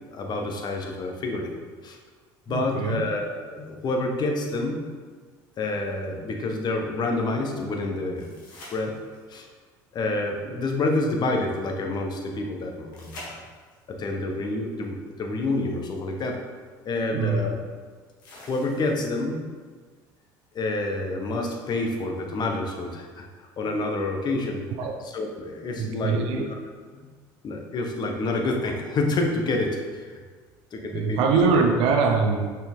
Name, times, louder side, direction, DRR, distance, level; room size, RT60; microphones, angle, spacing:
voice 1, 0.1-1.6 1.8-2.0 2.5-4.9 5.6-8.3 8.7-9.0 9.3-9.5 9.9-13.4 13.9-16.4 16.8-17.6 18.3-19.4 20.5-23.2 23.6-24.7 25.0-26.6 26.9-27.0 27.4-30.2 30.7-31.3, left 2 dB, 45° left, 2 dB, 1.1 m, -28 dB
voice 2, 2.5-3.0 17.1-17.4 24.8-25.0 25.8-26.5 30.9-32.6, right 4 dB, 65° right, 2 dB, 0.7 m, -23 dB
sound 1, 8.2-9.4 12.9-13.9 15.8-15.9 18.2-19.2 22.2-22.3, left 1 dB, 85° left, 1.7 m, -45 dB
5.7 x 4.6 x 3.6 m, 1.5 s
hypercardioid pair, 75°, 10 cm